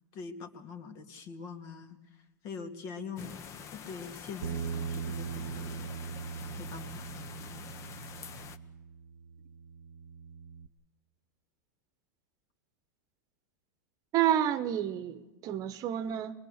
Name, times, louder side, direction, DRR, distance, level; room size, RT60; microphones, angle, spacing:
voice 1, 0.1-3.4 3.7-5.9 6.6-7.1, left 5 dB, 45° left, 2.5 m, -44 dB
sound 1, 3.2-8.6, left 7 dB, 30° left, 1.1 m, -46 dB
Bass guitar, 4.4-10.7, right 6 dB, 80° right, 0.8 m, -40 dB
voice 2, 14.1-16.3, right 10 dB, 35° right, 1.1 m, -29 dB
22.0 x 22.0 x 6.6 m
supercardioid pair, 130°, 10 cm